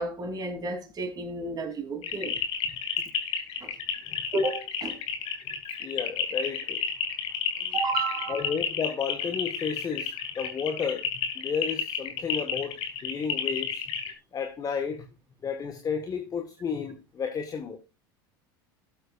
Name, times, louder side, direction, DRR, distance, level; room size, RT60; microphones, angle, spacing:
voice 1, 0.0-2.4 3.6-3.7 4.3-5.0 7.6-8.5, right 2 dB, 35° right, 3.4 m, -31 dB
sound 1, 2.0-14.1, left 8 dB, 55° left, 2.8 m, -31 dB
voice 2, 5.8-6.8 8.3-11.1 11.3-14.0 14.3-15.1 15.4-17.8, left 6 dB, 30° left, 1.6 m, -32 dB
18.0 x 7.8 x 2.5 m
hypercardioid pair, 85°, 12 cm